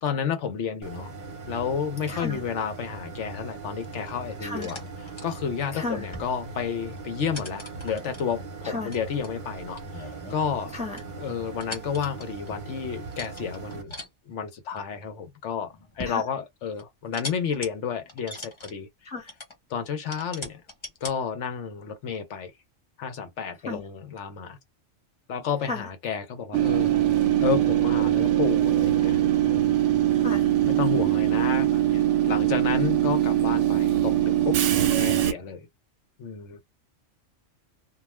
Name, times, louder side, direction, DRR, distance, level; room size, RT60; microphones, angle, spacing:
voice 1, 0.0-1.1 1.5-4.8 5.2-10.8 11.2-13.9 14.3-19.1 19.7-20.6 21.0-22.5 23.0-24.6 25.3-27.0 27.4-29.8 30.7-34.6 35.0-35.7 36.2-36.6, left 7 dB, 70° left, 1.0 m, -31 dB
sound 1, 0.8-13.8, right 3 dB, 45° right, 0.8 m, -40 dB
voice 2, 2.1-2.4 4.4-4.7 5.7-6.1 8.6-8.9 10.7-11.0 16.1-16.2 19.0-19.3 23.7-23.8 25.7-25.9 30.2-30.5, left 3 dB, 5° right, 0.6 m, -33 dB
sound 2, 4.6-5.3 6.0-6.5 6.8-7.0 7.3-8.2 8.9-10.7 11.0-11.1 11.5-12.6 13.1-14.1 14.7-15.2 15.7-16.3 16.8-17.7 18.1-18.7 19.3-19.6 20.1-21.2, left 1 dB, 25° left, 0.8 m, -40 dB
Train / Subway metro underground, 26.5-35.3, right 12 dB, 70° right, 0.9 m, -22 dB
2.3 x 2.3 x 3.0 m
omnidirectional pair, 1.3 m